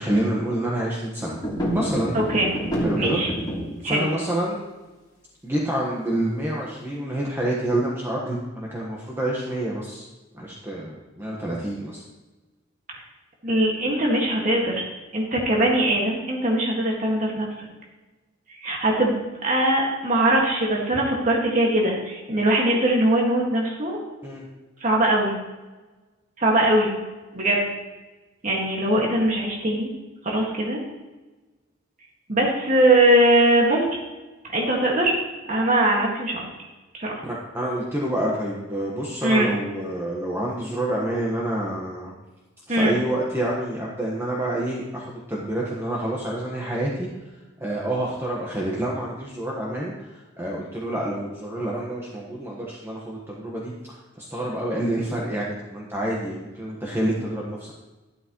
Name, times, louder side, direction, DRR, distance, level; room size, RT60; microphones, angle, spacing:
voice 1, 0.0-1.4 1.7-2.2 2.8-3.2 3.8-4.6 5.4-10.0 10.3-12.0 24.2-24.4 37.2-42.1 42.7-47.1 47.6-57.7, right 1 dB, 10° right, -4 dB, 1.3 m, -28 dB
sound 1, 1.2-3.8, equal, 20° left, 3.1 m, -28 dB
voice 2, 2.1-2.5 3.0-3.3 3.8-4.1 13.4-14.8 15.1-17.7 18.6-24.0 24.8-25.4 26.4-26.9 27.3-27.7 28.4-29.9 30.2-30.8 32.3-33.9 34.5-35.2 35.5-36.4 36.9-37.2 39.2-39.5 42.7-43.0, right 1 dB, 40° right, -2 dB, 1.9 m, -21 dB
12.5 x 12.0 x 3.1 m, 1.2 s
head